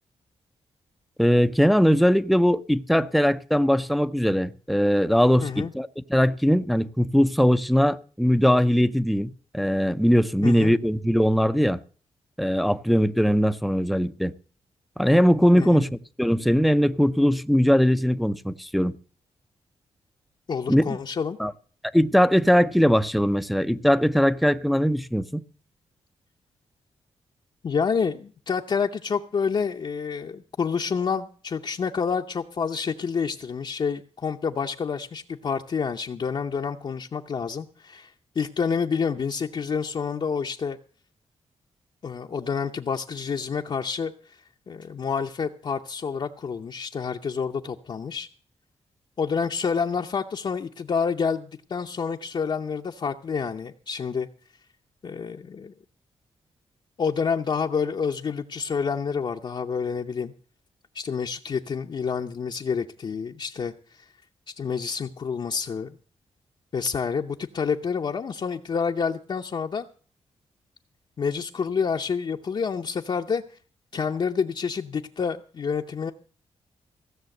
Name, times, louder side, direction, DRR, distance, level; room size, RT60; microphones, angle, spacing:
voice 1, 1.2-11.8 12.4-14.3 15.0-18.9 20.7-20.8 21.4-21.5 21.9-25.4, equal, ahead, 0.5 m, -20 dB
voice 2, 5.4-5.7 10.4-10.7 15.6-15.9 20.5-21.4 27.6-40.8 42.0-44.4 44.7-48.3 49.2-54.3 55.0-55.7 57.0-60.3 60.9-64.1 64.6-66.0 66.7-69.9 71.2-73.4 73.9-76.1, left 6 dB, 45° left, 0.7 m, -28 dB
16.0 x 6.8 x 7.8 m
wide cardioid pair, 120°, 11 cm